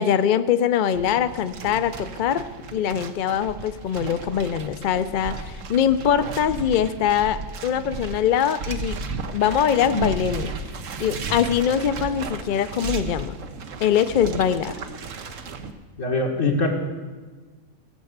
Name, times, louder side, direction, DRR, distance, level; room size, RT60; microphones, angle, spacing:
voice 1, 0.0-9.0 9.3-10.5 11.0-13.4 13.8-14.8, left 9 dB, 55° left, 11 dB, 0.6 m, -23 dB
sound 1, 0.9-15.7, right 4 dB, 85° right, 1.3 m, -34 dB
voice 2, 16.0-16.7, left 3 dB, 85° left, 1 dB, 2.3 m, -22 dB
16.0 x 6.9 x 8.0 m, 1.3 s
omnidirectional pair, 1.3 m